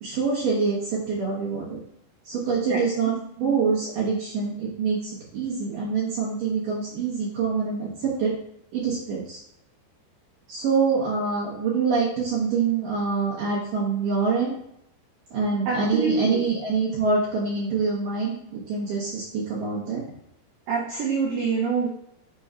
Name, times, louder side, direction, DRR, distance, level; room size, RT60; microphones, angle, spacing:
voice 1, 0.0-1.8 2.2-3.1 3.4-8.3 8.7-9.4 10.5-14.6 15.3-20.0, right 5 dB, 65° right, -6 dB, 2.3 m, -25 dB
voice 2, 15.7-16.4 20.7-21.9, right 4 dB, 80° right, -2 dB, 2.0 m, -25 dB
6.7 x 3.0 x 4.8 m, 0.75 s
omnidirectional pair, 5.2 m